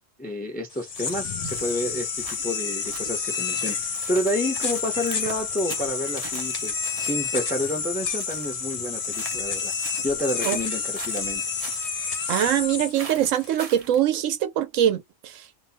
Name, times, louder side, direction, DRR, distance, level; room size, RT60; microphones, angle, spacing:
voice 1, 0.2-6.8 7.0-9.7 10.0-11.4, left 1 dB, 10° left, 0.4 m, -29 dB
sound 1, 0.7-13.5, left 5 dB, 70° left, 0.3 m, -29 dB
sound 2, 1.0-14.0, right 5 dB, 45° right, 0.5 m, -43 dB
voice 2, 12.3-15.4, right 11 dB, 90° right, 1.0 m, -23 dB
2.7 x 2.0 x 2.7 m
omnidirectional pair, 1.3 m